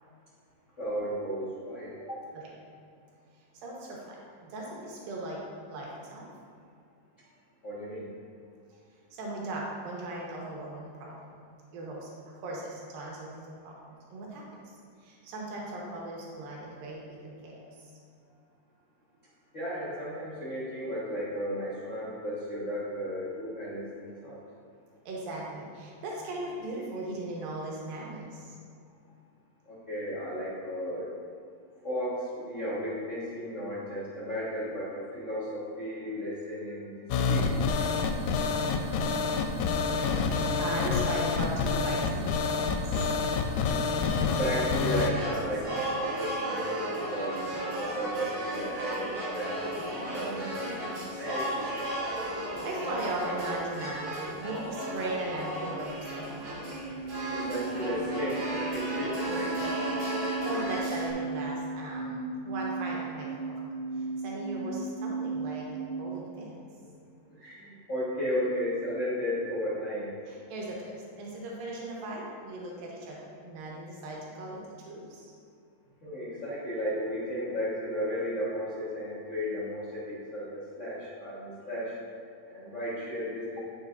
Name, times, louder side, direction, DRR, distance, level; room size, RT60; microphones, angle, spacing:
voice 1, 0.8-2.2 7.6-8.1 19.5-24.4 29.6-31.1 31.8-37.5 43.9-47.4 47.7-50.8 51.1-51.9 57.3-58.4 58.7-59.6 67.3-70.1 76.0-82.0 82.5-83.6, equal, 70° left, -10 dB, 0.7 m, -34 dB
voice 2, 3.6-4.2 4.4-5.4 5.7-6.3 9.1-11.1 11.7-12.1 12.4-13.4 13.6-13.7 14.1-14.4 15.0-17.6 25.1-28.5 40.6-42.7 52.5-56.6 60.4-63.6 64.2-66.6 70.5-74.6 74.9-75.2, right 1 dB, 90° right, -3 dB, 2.9 m, -38 dB
sound 1, 37.1-45.1, left 4 dB, 85° left, 1.7 m, -27 dB
sound 2, 44.9-61.1, right 1 dB, 50° right, 1.8 m, -35 dB
sound 3, 56.5-66.1, right 4 dB, 70° right, 2.3 m, -35 dB
9.8 x 6.4 x 2.5 m, 2.3 s
omnidirectional pair, 3.9 m